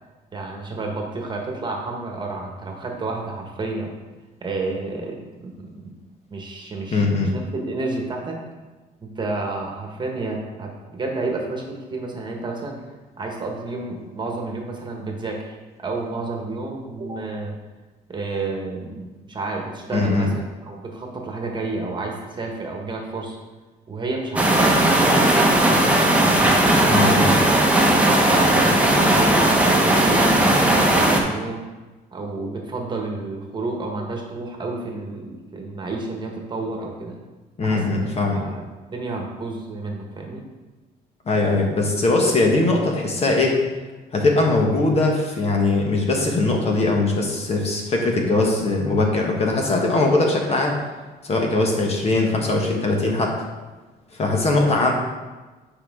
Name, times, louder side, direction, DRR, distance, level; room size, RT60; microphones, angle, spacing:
voice 1, 0.3-3.9 4.4-5.9 6.3-8.4 9.0-12.7 13.2-17.5 18.1-20.3 20.6-23.4 23.9-26.2 26.6-27.4 27.7-31.6 32.1-37.1 37.6-38.1 38.3-38.6 38.9-40.4, right 3 dB, 25° right, 1 dB, 1.4 m, -30 dB
voice 2, 6.9-7.3 19.9-20.3 26.8-27.3 37.6-38.4 41.3-43.6 44.1-50.8 51.2-53.4 54.2-54.9, left 2 dB, 35° left, 1 dB, 1.3 m, -20 dB
sound 1, 24.4-31.2, right 1 dB, 10° right, 1.1 m, -17 dB
8.6 x 5.0 x 3.7 m, 1.2 s
cardioid pair, 110°, 17 cm